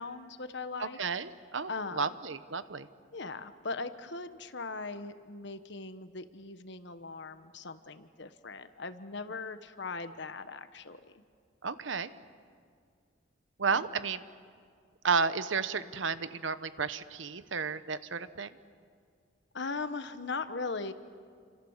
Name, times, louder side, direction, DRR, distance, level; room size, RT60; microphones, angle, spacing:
voice 1, 0.0-1.0 1.7-2.1 3.1-11.2 13.7-13.8 19.5-20.9, left 3 dB, 65° left, 10 dB, 1.3 m, -39 dB
voice 2, 0.8-2.9 11.6-12.1 13.6-14.2 15.0-18.5, right 5 dB, 80° right, 13 dB, 1.0 m, -32 dB
29.5 x 26.5 x 7.3 m, 2.1 s
head